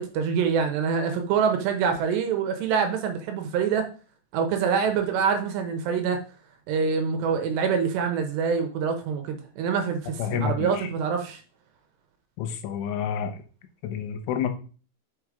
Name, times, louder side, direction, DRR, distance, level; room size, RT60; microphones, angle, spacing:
voice 1, 0.0-3.9 4.3-6.2 6.7-11.4, right 6 dB, 75° right, 6 dB, 2.9 m, -25 dB
voice 2, 10.2-10.9 12.4-13.4 13.8-14.5, left 8 dB, 85° left, 8 dB, 3.5 m, -29 dB
6.3 x 5.7 x 5.0 m, 0.37 s
omnidirectional pair, 5.5 m